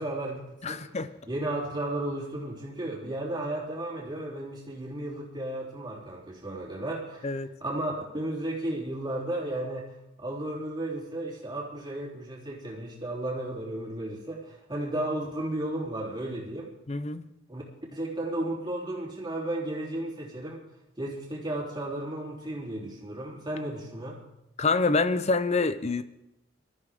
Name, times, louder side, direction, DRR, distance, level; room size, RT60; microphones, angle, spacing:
voice 1, 0.0-0.9 1.3-9.9 10.2-16.7 17.5-17.6 17.9-20.6 21.0-24.2, right 1 dB, 20° right, -3 dB, 3.4 m, -34 dB
voice 2, 0.6-1.1 7.2-7.5 16.9-17.3 24.6-26.0, left 3 dB, 35° left, 12 dB, 0.6 m, -26 dB
22.0 x 13.5 x 3.6 m, 0.89 s
head